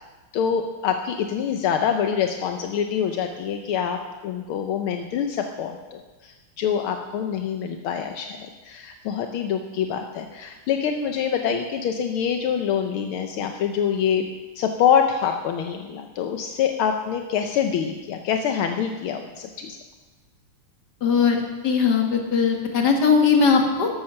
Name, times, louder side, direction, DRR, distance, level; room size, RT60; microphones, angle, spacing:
voice 1, 0.3-14.3 14.5-19.8, left 8 dB, 80° left, 5 dB, 1.7 m, -25 dB
voice 2, 21.0-23.9, left 5 dB, 50° left, 2 dB, 2.3 m, -19 dB
13.0 x 13.0 x 5.8 m, 1.2 s
omnidirectional pair, 2.4 m